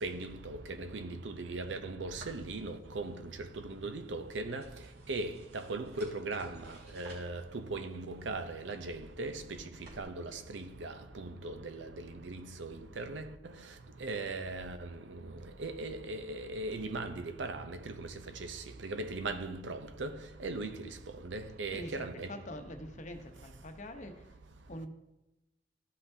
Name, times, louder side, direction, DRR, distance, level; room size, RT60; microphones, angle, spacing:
voice 1, 0.0-4.6 5.1-13.3 14.0-15.2 15.6-18.1 18.4-20.1 20.4-20.9 21.2-22.3, right 2 dB, 85° right, 0.6 m, -39 dB
sound 1, 2.1-10.0, right 2 dB, 60° right, 2.4 m, -58 dB
voice 2, 21.7-24.3 24.7-24.9, left 1 dB, 40° left, 0.9 m, -44 dB
13.0 x 5.7 x 2.7 m
head